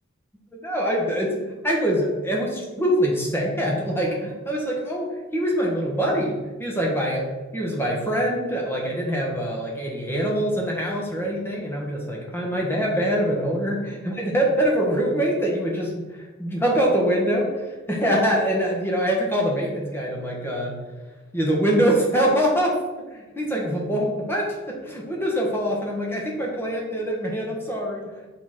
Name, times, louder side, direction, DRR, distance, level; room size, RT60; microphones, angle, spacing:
voice 1, 0.6-7.2 7.5-16.1 16.4-20.8 21.3-22.8 23.1-28.0, equal, 10° left, -2 dB, 1.3 m, -24 dB
5.7 x 4.1 x 5.9 m, 1.2 s
head